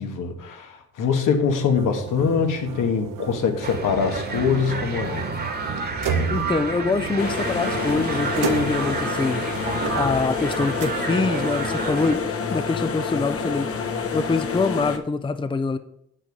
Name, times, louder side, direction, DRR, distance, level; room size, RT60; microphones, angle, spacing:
voice 1, 0.0-5.3, left 6 dB, 80° left, 5 dB, 1.6 m, -23 dB
sound 1, 1.7-11.4, right 7 dB, 85° right, 1.1 m, -33 dB
sound 2, 3.6-12.2, right 3 dB, 30° right, 1.6 m, -30 dB
voice 2, 6.3-9.5 9.9-12.2 12.5-13.7 14.1-15.8, left 3 dB, 15° left, 11 dB, 0.6 m, -24 dB
sound 3, 7.2-15.0, left 5 dB, 45° left, 1.1 m, -28 dB
7.9 x 6.5 x 5.3 m, 0.73 s
cardioid pair, 90°, 31 cm